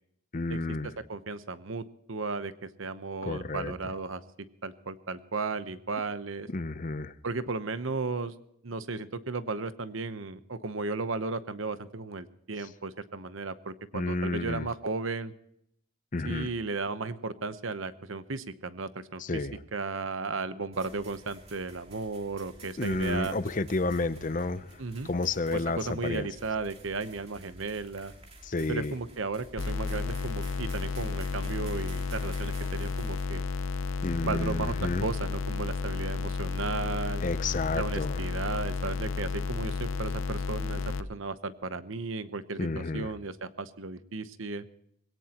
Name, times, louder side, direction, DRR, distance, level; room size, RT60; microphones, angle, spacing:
voice 1, 0.3-0.9 3.2-3.7 6.5-7.1 13.9-14.7 16.1-16.5 19.2-19.6 22.8-26.3 28.4-29.0 34.0-35.0 37.2-38.2 42.6-43.1, left 3 dB, 40° left, 14 dB, 0.6 m, -31 dB
voice 2, 1.1-4.2 4.6-6.5 7.2-8.3 8.6-15.3 16.2-19.2 19.7-23.4 24.8-25.1 25.5-28.1 28.7-33.5 34.2-37.2 37.7-40.8 41.1-44.6, right 3 dB, 70° right, 12 dB, 0.9 m, -35 dB
sound 1, 20.7-33.2, right 2 dB, 30° right, 2.9 m, -51 dB
sound 2, 29.6-41.0, left 4 dB, 75° left, 0.7 m, -32 dB
21.5 x 17.5 x 3.0 m, 0.75 s
head